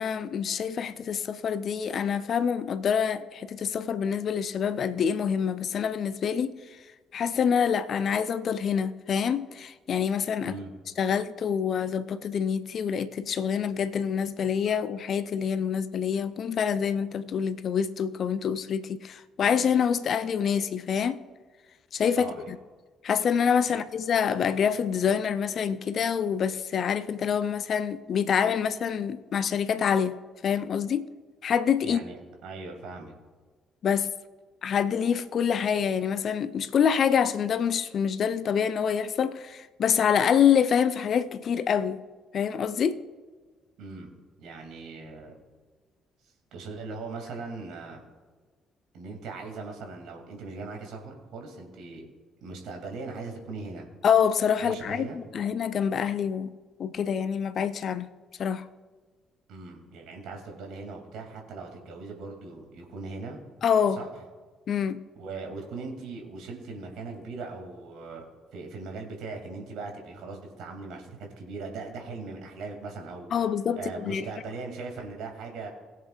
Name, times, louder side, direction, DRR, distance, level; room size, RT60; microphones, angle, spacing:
voice 1, 0.0-6.5 7.1-10.5 11.0-21.2 21.9-22.6 23.0-30.2 30.4-31.1 31.4-32.0 33.8-34.1 34.6-42.0 42.3-43.0 54.0-56.5 56.8-58.1 58.4-58.7 63.6-64.0 64.7-65.0 73.3-74.3, left 7 dB, 45° left, 0.5 m, -26 dB
voice 2, 31.8-32.2 32.4-33.1 43.8-44.1 44.4-45.4 46.5-48.0 48.9-52.1 52.4-53.9 54.6-55.2 59.5-63.4 64.0-64.2 65.1-68.2 68.5-73.5 73.7-75.7, right 3 dB, 55° right, 2.5 m, -39 dB
21.0 x 7.5 x 2.4 m
figure-of-eight pair, 45°, 0 cm